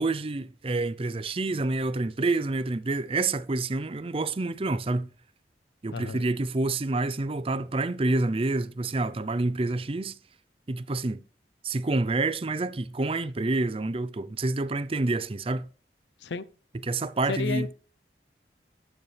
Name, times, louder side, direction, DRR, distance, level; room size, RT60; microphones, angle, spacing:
voice 1, 0.0-5.1 5.8-10.1 10.7-11.2 11.6-15.7 16.8-17.7, right 2 dB, 30° right, 0.5 m, -28 dB
voice 2, 5.9-6.2 16.2-16.4 17.3-17.7, left 5 dB, 85° left, 0.6 m, -32 dB
11.0 x 8.0 x 3.3 m
head